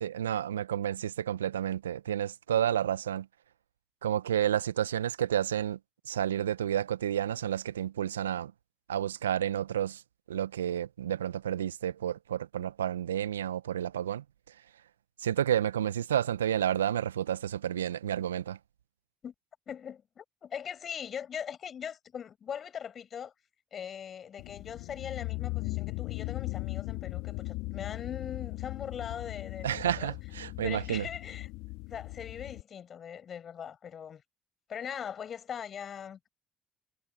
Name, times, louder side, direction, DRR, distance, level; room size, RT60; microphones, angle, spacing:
voice 1, 0.0-3.3 4.0-5.8 6.1-8.5 8.9-10.0 10.3-14.2 15.2-18.6 29.6-31.1, right 10 dB, 85° right, 1.5 m, -30 dB
voice 2, 19.7-23.3 23.7-30.1 30.6-31.5 31.9-34.2 34.7-36.3, left 8 dB, 45° left, 7.7 m, -41 dB
sound 1, 24.4-32.6, left 23 dB, 70° left, 2.8 m, -38 dB
figure-of-eight pair, 50°, 0 cm